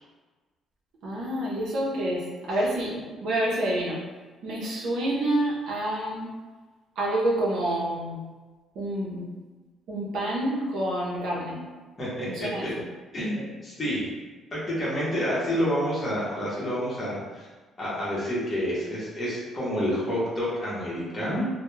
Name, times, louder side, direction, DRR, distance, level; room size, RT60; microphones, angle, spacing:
voice 1, 1.0-2.2 2.5-4.0 4.4-6.3 7.0-8.2 8.8-9.3 9.9-11.6 12.3-12.7, right 1 dB, 75° right, -6 dB, 0.6 m, -28 dB
voice 2, 12.0-12.7 13.1-14.1 14.5-17.5 17.8-21.5, equal, 25° left, -9 dB, 0.8 m, -29 dB
2.2 x 2.0 x 3.1 m, 1.3 s
cardioid pair, 155°, 0 cm